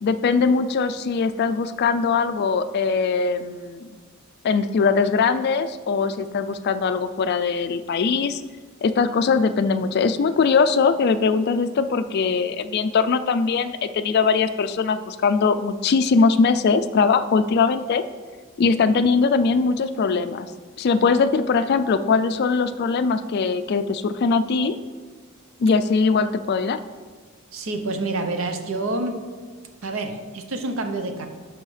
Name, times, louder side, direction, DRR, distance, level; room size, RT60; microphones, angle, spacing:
voice 1, 0.0-3.9 4.4-8.4 8.8-18.0 18.6-20.5 20.8-24.8 25.6-26.8, left 5 dB, 50° left, 11 dB, 0.3 m, -21 dB
voice 2, 27.5-29.2 29.8-31.3, right 2 dB, 70° right, 6 dB, 0.8 m, -27 dB
11.5 x 4.6 x 3.3 m, 1.5 s
head